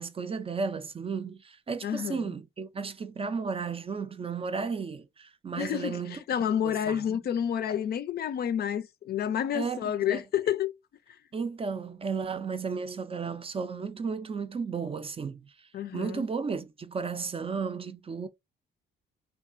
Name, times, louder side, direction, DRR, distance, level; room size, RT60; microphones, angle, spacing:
voice 1, 0.0-6.2 6.6-7.2 9.5-10.2 11.3-15.5 15.9-18.3, right 5 dB, 30° right, 0.4 m, -34 dB
voice 2, 1.8-2.3 5.6-10.7 15.7-16.3, left 9 dB, 55° left, 0.4 m, -29 dB
2.8 x 2.3 x 2.5 m
cardioid pair, 90°, 20 cm